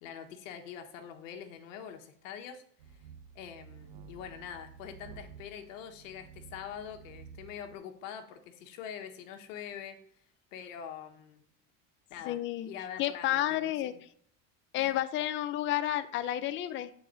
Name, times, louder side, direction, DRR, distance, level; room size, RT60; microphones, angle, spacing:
voice 1, 0.0-2.6 3.3-10.0 10.5-11.4 12.1-13.7 14.8-14.9, left 8 dB, 80° left, 6 dB, 1.2 m, -44 dB
sound 1, 2.8-7.8, right 7 dB, 80° right, 1.0 m, -52 dB
voice 2, 12.2-12.7 13.0-13.9 14.7-16.9, left 13 dB, 30° left, 12 dB, 0.5 m, -31 dB
8.3 x 4.1 x 3.9 m, 0.63 s
supercardioid pair, 140°, 38 cm